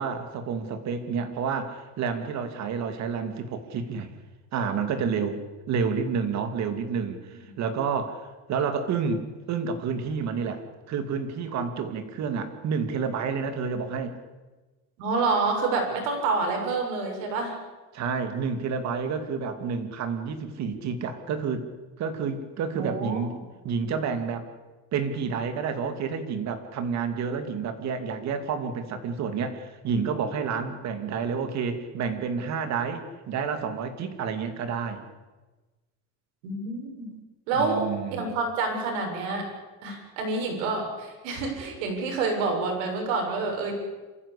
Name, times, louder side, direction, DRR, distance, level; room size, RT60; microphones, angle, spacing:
voice 1, 0.0-4.1 4.5-14.2 17.9-21.7 22.0-23.3 23.6-24.5 24.9-35.0 37.0-37.2 37.6-38.2, right 6 dB, 45° right, 8 dB, 2.6 m, -29 dB
voice 2, 15.0-17.6 22.7-23.2 36.4-37.0 37.5-39.4 39.8-43.7, right 3 dB, 85° right, 2 dB, 7.0 m, -28 dB
26.5 x 15.0 x 8.5 m, 1.2 s
cardioid pair, 150°, 38 cm